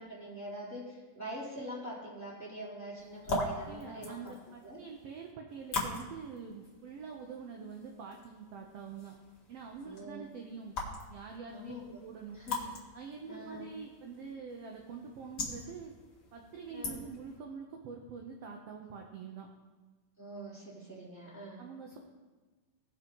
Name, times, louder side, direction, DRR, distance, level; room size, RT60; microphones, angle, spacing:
voice 1, 0.0-4.3 4.6-4.8 9.8-10.3 11.5-12.0 12.3-12.7 13.3-13.6 16.7-17.0 20.2-21.6, equal, 5° left, -8 dB, 3.1 m, -44 dB
sound 1, 3.0-17.4, left 2 dB, 40° left, 1.9 m, -42 dB
voice 2, 3.7-9.1 9.5-10.7 11.1-11.7 12.0-12.5 12.9-15.9 16.3-19.5 21.6-22.0, right 5 dB, 70° right, 1 dB, 1.5 m, -45 dB
18.5 x 6.5 x 3.0 m, 1.3 s
omnidirectional pair, 3.7 m